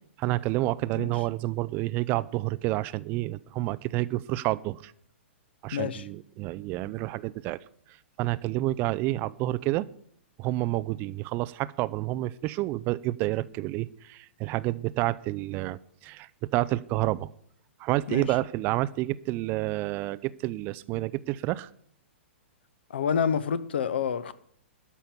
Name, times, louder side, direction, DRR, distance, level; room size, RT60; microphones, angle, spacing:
voice 1, 0.2-4.9 5.6-7.6 7.9-9.9 10.4-17.3 17.8-21.7, right 17 dB, 30° right, 0.4 m, -29 dB
voice 2, 5.7-6.1 18.1-18.3 22.9-24.3, left 7 dB, 60° left, 0.9 m, -28 dB
13.0 x 5.7 x 8.8 m
figure-of-eight pair, 110°, 7 cm